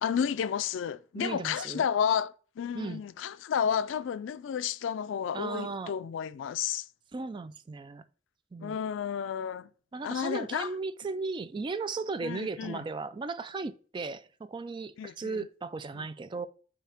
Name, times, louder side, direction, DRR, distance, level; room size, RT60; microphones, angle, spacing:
voice 1, 0.0-6.9 8.6-9.7 10.0-10.7 12.2-12.8 15.0-15.5 16.0-16.1, left 8 dB, 80° left, 0.3 m, -31 dB
voice 2, 1.1-1.9 2.7-3.0 5.3-5.9 7.1-8.0 8.5-8.8 9.9-16.5, right 4 dB, 25° right, 0.3 m, -36 dB
6.7 x 2.8 x 5.7 m
head